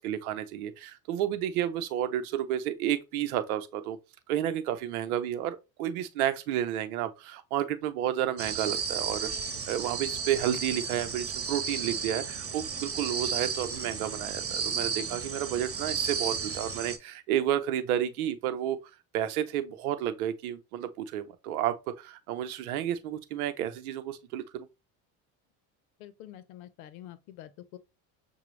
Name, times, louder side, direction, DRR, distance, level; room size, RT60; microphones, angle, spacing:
voice 1, 0.0-4.0 4.3-9.3 9.7-18.8 19.1-24.7, right 11 dB, 90° right, 0.7 m, -31 dB
sound 1, 8.4-17.0, right 6 dB, 30° right, 1.2 m, -33 dB
voice 2, 26.0-27.8, left 12 dB, 85° left, 0.8 m, -47 dB
6.7 x 2.3 x 3.1 m
supercardioid pair, 80°, 42 cm